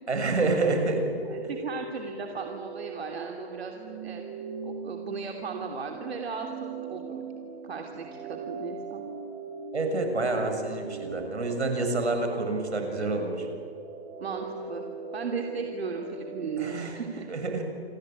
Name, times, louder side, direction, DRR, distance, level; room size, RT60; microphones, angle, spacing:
voice 1, 0.1-1.1 9.7-13.5 16.6-17.0 17.3-17.6, right 3 dB, 90° right, 5 dB, 6.9 m, -28 dB
sound 1, 0.9-16.8, right 4 dB, 15° right, 2.3 m, -40 dB
voice 2, 1.3-3.7 4.0-4.2 4.6-7.2 7.6-9.0 14.2-14.8 15.1-17.3, right 5 dB, 70° right, 3 dB, 3.0 m, -36 dB
28.5 x 23.0 x 8.8 m, 2.5 s
hypercardioid pair, 150°, 32 cm